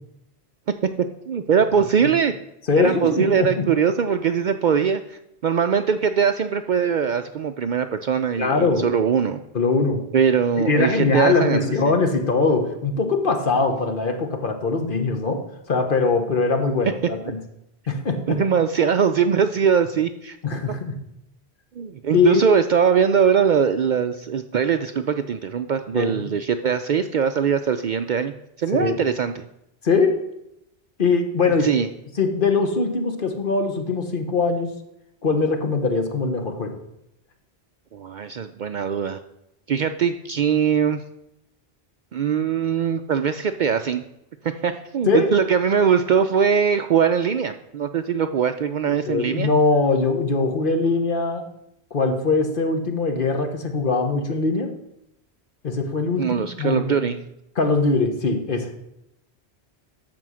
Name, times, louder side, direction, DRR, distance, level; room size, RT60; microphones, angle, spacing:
voice 1, 1.3-2.3 2.8-9.4 10.1-11.9 18.3-20.4 21.8-28.3 28.6-29.4 31.6-31.9 37.9-39.2 39.7-41.0 42.1-44.0 44.4-49.5 56.2-57.2, right 7 dB, 60° right, 8 dB, 0.5 m, -21 dB
voice 2, 2.7-3.7 8.4-8.9 9.5-10.0 10.6-17.4 17.9-18.4 20.4-21.0 22.1-22.4 25.9-26.4 28.7-29.0 29.8-30.2 31.0-31.7 32.2-34.7 35.2-36.8 45.1-45.3 49.1-51.5 51.9-54.7 55.6-57.0 57.6-58.7, left 4 dB, 55° left, 5 dB, 1.3 m, -22 dB
13.5 x 4.6 x 6.2 m, 0.83 s
omnidirectional pair, 1.1 m